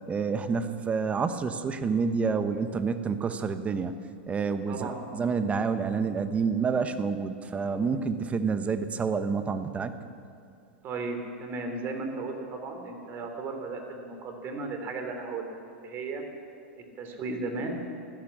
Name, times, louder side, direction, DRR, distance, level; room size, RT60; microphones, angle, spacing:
voice 1, 0.1-3.9 4.3-9.9, right 5 dB, 20° right, 10 dB, 1.1 m, -28 dB
voice 2, 4.7-5.0 10.8-16.3 16.8-17.8, right 3 dB, 40° right, 5 dB, 3.1 m, -35 dB
15.5 x 12.0 x 7.3 m, 2.4 s
hypercardioid pair, 95°, 6 cm